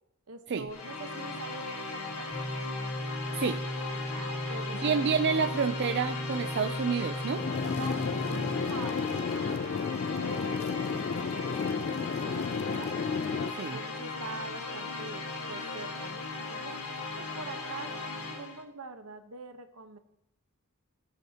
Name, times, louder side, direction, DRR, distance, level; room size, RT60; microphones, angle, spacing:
voice 1, 0.3-2.3 4.1-5.1 5.3-5.5 7.8-11.6 11.9-12.9 13.6-16.7 17.2-20.0, right 3 dB, 70° right, 7 dB, 1.1 m, -44 dB
sound 1, 0.7-18.6, left 3 dB, 75° left, 1.9 m, -38 dB
sound 2, 2.3-8.7, left 1 dB, 20° left, 3.2 m, -36 dB
voice 2, 4.8-7.5 13.5-13.8, right 6 dB, 50° right, 7 dB, 0.4 m, -29 dB
sound 3, 7.4-13.5, left 5 dB, 45° left, 0.4 m, -32 dB
17.0 x 8.8 x 2.9 m, 0.82 s
head